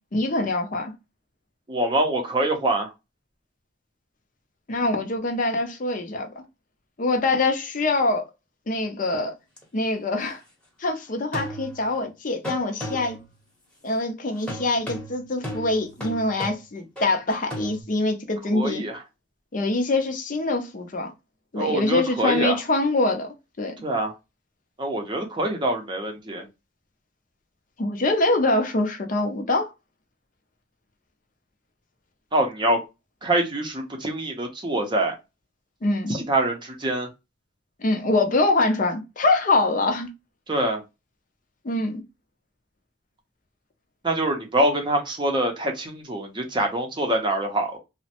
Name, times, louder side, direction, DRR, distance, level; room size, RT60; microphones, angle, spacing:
voice 1, 0.1-0.9 4.7-6.4 7.0-8.2 8.7-9.3 9.7-10.4 10.8-13.2 13.8-18.8 19.5-21.1 21.5-23.3 23.6-23.7 27.8-29.7 35.8-36.2 37.8-40.1 41.6-42.0, left 2 dB, 45° left, 0.5 m, -24 dB
voice 2, 1.7-2.9 12.9-13.0 18.5-19.0 21.6-22.6 23.8-24.1 24.8-26.5 32.3-32.8 33.2-35.1 36.1-37.1 40.5-40.8 44.0-47.8, right 1 dB, 25° right, 0.6 m, -25 dB
sound 1, 9.6-9.7 11.3-12.0 12.4-13.4 14.5-17.8, equal, 5° left, 0.9 m, -35 dB
3.1 x 2.0 x 2.8 m
head